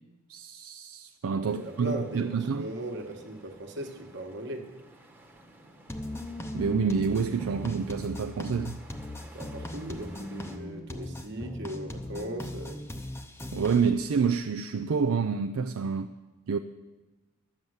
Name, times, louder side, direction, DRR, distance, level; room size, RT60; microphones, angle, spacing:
voice 1, 0.3-2.7 6.5-8.8 13.5-16.1 16.5-16.6, right 5 dB, 70° right, 0.4 m, -28 dB
voice 2, 1.3-4.7 9.3-12.8, equal, 50° right, 1.4 m, -38 dB
sound 1, 1.4-10.6, right 1 dB, 10° right, 1.1 m, -53 dB
sound 2, 5.9-13.9, left 1 dB, 10° left, 0.7 m, -39 dB
12.0 x 7.2 x 7.9 m
head